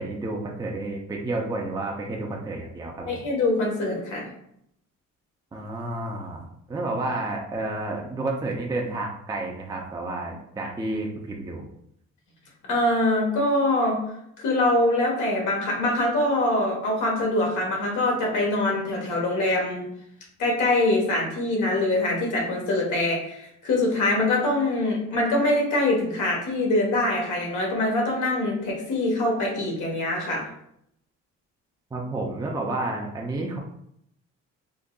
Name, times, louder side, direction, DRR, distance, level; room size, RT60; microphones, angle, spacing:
voice 1, 0.0-3.2 5.5-6.4 6.7-11.7 31.9-33.6, right 2 dB, 15° right, -1 dB, 0.5 m, -30 dB
voice 2, 3.0-4.3 12.7-14.0 14.4-19.8 20.4-30.5, left 2 dB, 80° left, -1 dB, 1.2 m, -24 dB
3.8 x 2.5 x 2.2 m, 0.73 s
cardioid pair, 90°, 30 cm